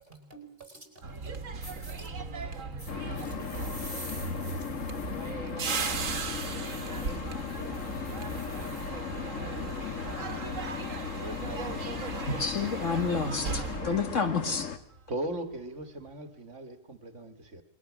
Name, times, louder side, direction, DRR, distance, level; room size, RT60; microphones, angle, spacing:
voice 1, 0.1-0.8 1.2-1.3 2.0-2.4 2.7-3.3 3.8-3.9 4.8-4.9 5.2-5.6, right 4 dB, 40° right, 6 dB, 5.0 m, -51 dB
sound 1, 1.0-15.0 15.3-15.6, right 4 dB, 85° right, 1.6 m, -37 dB
sound 2, 1.6-1.9 2.8-8.9, equal, 40° left, 8.2 m, -48 dB
sound 3, 2.9-14.8, left 7 dB, 90° left, 1.6 m, -37 dB
voice 2, 12.2-14.7, left 4 dB, 75° left, 6 dB, 2.4 m, -29 dB
voice 3, 15.1-17.6, right 1 dB, 70° right, 7 dB, 2.1 m, -38 dB
29.0 x 22.0 x 6.2 m, 0.74 s
omnidirectional pair, 1.3 m